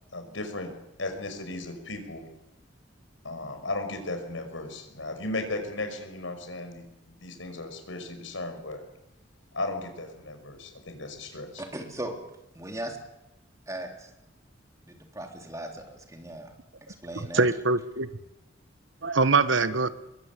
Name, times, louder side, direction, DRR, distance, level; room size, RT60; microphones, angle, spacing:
voice 1, 0.1-0.7 1.0-2.2 3.2-8.8 9.5-11.6, left 2 dB, 85° left, 5.6 m, -35 dB
voice 2, 11.6-12.1 12.6-13.0 13.7-14.1 14.9-16.5 17.0-17.5, right 1 dB, 15° right, 3.6 m, -37 dB
voice 3, 17.1-18.1 19.0-19.9, right 3 dB, 75° right, 1.3 m, -23 dB
24.0 x 22.5 x 8.4 m
head